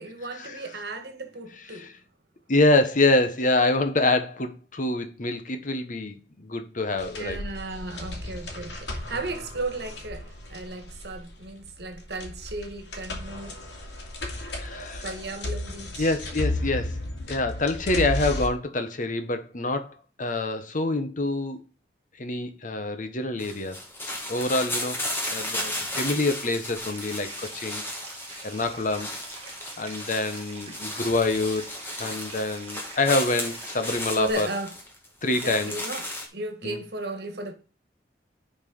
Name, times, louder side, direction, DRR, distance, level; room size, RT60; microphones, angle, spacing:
voice 1, 0.0-1.9 7.2-13.6 15.0-16.1 34.1-34.7 35.4-36.0 36.3-37.5, right 1 dB, 65° right, 1.5 m, -35 dB
voice 2, 2.5-7.4 14.5-15.0 16.0-17.0 17.3-21.6 22.2-23.8 24.3-25.0 25.3-27.8 28.4-29.1 29.8-31.6 32.0-34.5 35.2-35.8 36.6-36.8, left 2 dB, 50° left, 1.1 m, -26 dB
sound 1, 7.0-18.5, left 1 dB, 75° left, 2.5 m, -34 dB
sound 2, 23.4-36.3, left 1 dB, 15° left, 2.0 m, -34 dB
Stream, 26.8-34.3, right 4 dB, 35° right, 1.7 m, -45 dB
10.5 x 4.6 x 5.4 m
head